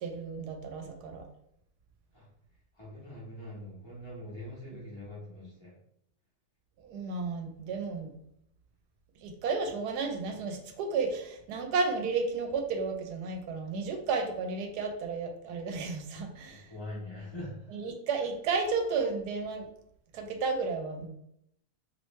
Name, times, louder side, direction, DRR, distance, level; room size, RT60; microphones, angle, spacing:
voice 1, 0.0-1.3 6.8-8.1 9.2-16.7 17.7-19.7 20.1-21.1, right 4 dB, 80° right, 4 dB, 1.1 m, -33 dB
voice 2, 2.8-5.7 16.5-17.5, left 1 dB, 20° left, -7 dB, 1.0 m, -43 dB
3.1 x 2.9 x 3.1 m, 0.75 s
omnidirectional pair, 1.7 m